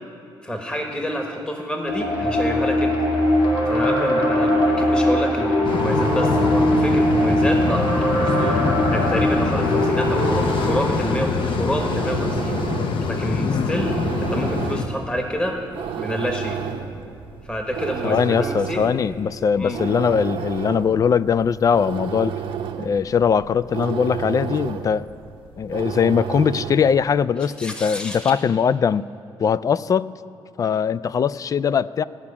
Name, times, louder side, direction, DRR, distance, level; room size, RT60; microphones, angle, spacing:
voice 1, 0.4-3.0 3.6-13.9 14.2-15.6 16.0-16.6 17.4-18.8 19.6-19.8 27.6-28.3, equal, 10° left, 2 dB, 1.3 m, -28 dB
sound 1, 1.9-11.2, left 1 dB, 90° left, 2.1 m, -21 dB
sound 2, 5.6-14.8, left 4 dB, 65° left, 0.9 m, -24 dB
sound 3, 9.7-27.1, right 8 dB, 85° right, 0.9 m, -32 dB
voice 2, 18.0-22.3 22.8-25.1 25.6-29.1 29.4-30.1 30.6-32.0, left 7 dB, 40° left, 18 dB, 0.3 m, -21 dB
15.5 x 6.0 x 9.8 m, 2.6 s
cardioid pair, 105°, 9 cm